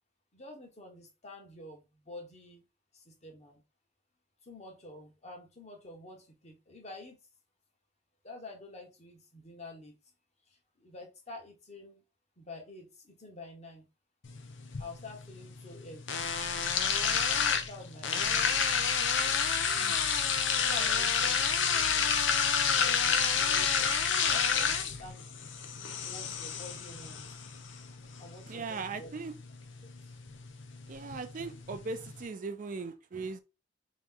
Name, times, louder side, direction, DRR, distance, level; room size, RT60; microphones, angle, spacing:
voice 1, 0.3-2.6 2.9-3.6 4.4-7.2 8.2-9.9 10.5-12.0 12.4-13.9 14.8-16.2 17.0-18.6 20.6-22.3 22.7-25.3 26.0-27.4 28.2-29.1 30.0-30.1, left 2 dB, 35° left, 1.1 m, -48 dB
sound 1, 14.2-32.2, left 6 dB, 85° left, 0.7 m, -30 dB
voice 2, 28.5-29.3 30.9-33.4, right 4 dB, 45° right, 0.4 m, -39 dB
3.1 x 3.0 x 3.8 m
head